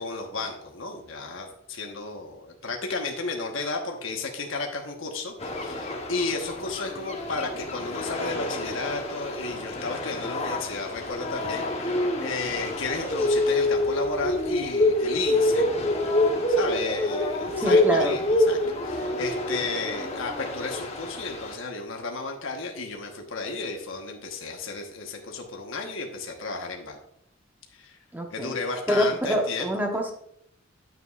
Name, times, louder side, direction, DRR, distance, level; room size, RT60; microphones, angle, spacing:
voice 1, 0.0-15.7 16.5-27.0 27.7-28.0 28.3-29.8, left 3 dB, 65° left, 2 dB, 1.3 m, -33 dB
sound 1, 5.4-21.5, left 1 dB, 30° left, 1.1 m, -27 dB
voice 2, 17.6-18.2 28.1-28.6 28.9-30.1, equal, 10° right, 3 dB, 1.1 m, -26 dB
9.7 x 7.7 x 2.5 m, 0.73 s
head